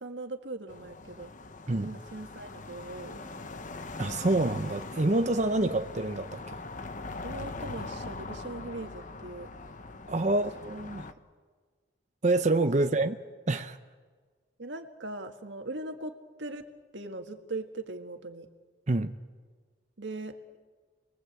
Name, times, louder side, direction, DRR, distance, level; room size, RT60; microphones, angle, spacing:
voice 1, 0.0-1.3 1.7-3.5 7.2-9.5 10.3-10.4 14.6-16.7 16.9-18.5 20.0-20.4, right 2 dB, 85° right, 1.9 m, -40 dB
sound 1, 0.7-11.1, left 3 dB, 45° left, 1.1 m, -42 dB
voice 2, 4.0-6.4 10.1-11.1 12.2-13.1 13.5-13.8 18.9-19.1, right 2 dB, 40° right, 0.8 m, -27 dB
30.0 x 22.0 x 8.1 m
head